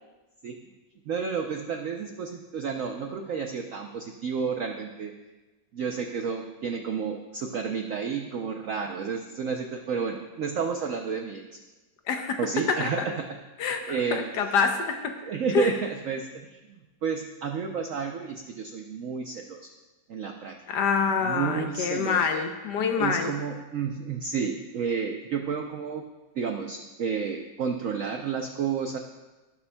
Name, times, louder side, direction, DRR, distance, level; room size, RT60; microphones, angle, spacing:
voice 1, 1.1-5.1 5.7-11.4 12.4-13.3 13.9-14.3 15.2-19.7 20.1-20.5 21.2-22.4 23.0-26.0 26.4-29.0, right 6 dB, 75° right, 3 dB, 0.7 m, -31 dB
voice 2, 12.1-12.4 12.7-13.1 13.6-15.2 15.5-15.7 20.7-23.3, left 5 dB, 70° left, 6 dB, 1.1 m, -26 dB
18.5 x 6.9 x 2.2 m, 1.2 s
omnidirectional pair, 2.1 m